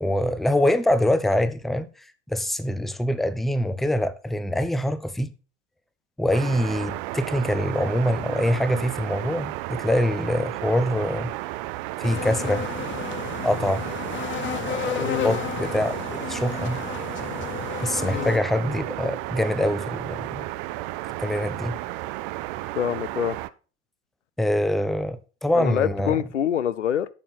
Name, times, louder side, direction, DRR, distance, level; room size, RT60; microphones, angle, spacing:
voice 1, 0.0-1.9 2.3-5.3 6.2-11.3 12.0-12.6 13.4-13.8 14.5-16.8 17.8-20.5 21.2-21.7 24.4-26.2, left 1 dB, ahead, 0.5 m, -24 dB
sound 1, 6.3-23.5, right 17 dB, 50° right, 0.5 m, -33 dB
sound 2, 12.0-18.4, left 9 dB, 35° left, 0.8 m, -33 dB
sound 3, 12.3-20.2, left 3 dB, 60° left, 3.4 m, -48 dB
voice 2, 15.0-15.4 18.0-18.4 22.8-23.4 25.5-27.1, left 9 dB, 85° left, 0.5 m, -26 dB
9.1 x 6.4 x 4.1 m
figure-of-eight pair, 70°, 35 cm